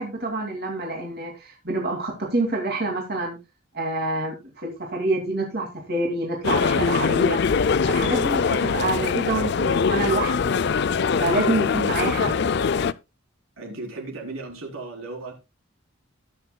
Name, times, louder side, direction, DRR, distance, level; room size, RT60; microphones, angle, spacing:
voice 1, 0.0-3.4 3.7-7.4 7.9-10.7 11.2-12.3, right 2 dB, 45° right, 0 dB, 2.5 m, -27 dB
sound 1, 6.4-12.9, left 5 dB, 50° left, 0.4 m, -22 dB
voice 2, 13.6-15.3, right 3 dB, 80° right, 1 dB, 4.0 m, -35 dB
20.0 x 6.7 x 2.2 m, 0.25 s
head